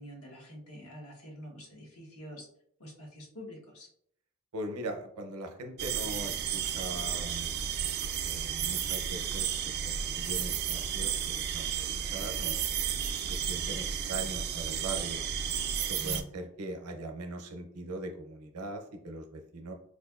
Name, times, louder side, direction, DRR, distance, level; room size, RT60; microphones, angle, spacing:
voice 1, 0.0-2.4 2.8-3.9 15.9-16.3, equal, 75° left, -2 dB, 1.1 m, -46 dB
voice 2, 4.5-7.5 8.2-12.9 13.2-15.2 15.7-19.7, right 2 dB, 75° right, 4 dB, 0.6 m, -41 dB
sound 1, 5.8-16.2, right 8 dB, 45° right, 0.3 m, -33 dB
4.3 x 2.5 x 2.3 m, 0.67 s
head